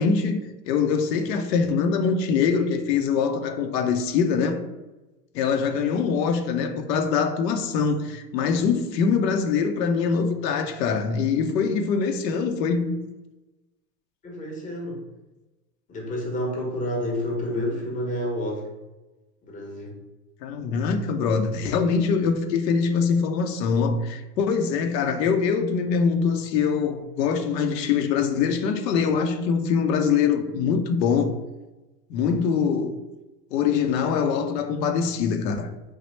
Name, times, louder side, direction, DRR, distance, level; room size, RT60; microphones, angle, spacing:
voice 1, 0.0-4.6 5.3-13.0 20.4-31.3 32.1-32.9 33.5-35.7, left 6 dB, 80° left, 0.6 m, -23 dB
voice 2, 14.2-15.0 15.9-18.6 19.4-19.9, left 1 dB, 15° left, 0.7 m, -29 dB
3.1 x 2.1 x 3.1 m
hypercardioid pair, 110°, 49 cm